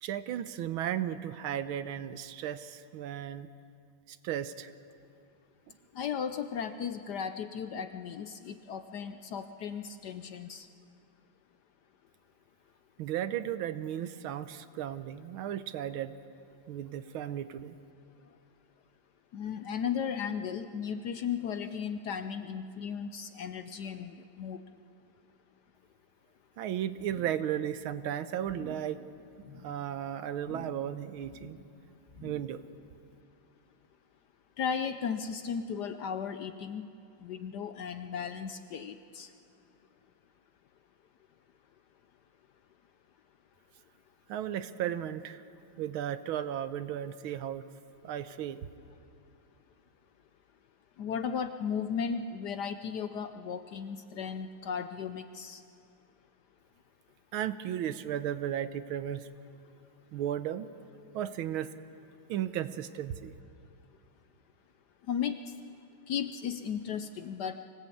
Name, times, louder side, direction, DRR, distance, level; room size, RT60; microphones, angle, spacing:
voice 1, 0.0-3.5 4.1-4.7 13.0-16.1 16.7-17.8 26.6-29.0 29.6-31.6 32.2-32.6 44.3-45.4 45.8-47.7 48.0-48.7 57.3-59.3 60.1-60.7 61.1-61.7 62.3-63.3, right 10 dB, 80° right, 13 dB, 1.6 m, -35 dB
voice 2, 5.9-10.7 19.3-24.6 34.6-36.9 37.2-39.3 51.0-55.6 65.1-65.4 66.1-67.6, left 7 dB, 65° left, 9 dB, 1.1 m, -35 dB
sound 1, 27.0-27.5 27.7-28.1 28.4-28.9 29.3-29.8 30.4-30.9 31.2-31.7 32.1-32.6 33.0-33.1, left 2 dB, 35° left, 2.5 m, -49 dB
24.5 x 17.5 x 8.5 m, 2.5 s
omnidirectional pair, 2.3 m